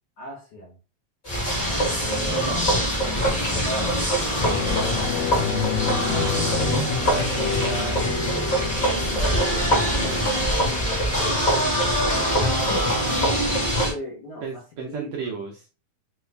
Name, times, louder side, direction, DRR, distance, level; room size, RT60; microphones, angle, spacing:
voice 1, 0.2-0.8 3.0-4.0 11.1-11.4 12.4-13.0 13.9-15.4, equal, 65° left, -3 dB, 1.4 m, -37 dB
sound 1, 1.2-13.9, equal, 25° left, 1.0 m, -23 dB
voice 2, 2.3-2.7 6.0-8.3 8.8-10.5 14.4-15.6, right 4 dB, 80° right, 1 dB, 1.5 m, -34 dB
sound 2, 4.2-13.2 13.6-13.7, left 7 dB, 85° left, 2.2 m, -31 dB
5.2 x 2.3 x 3.3 m, 0.33 s
omnidirectional pair, 3.7 m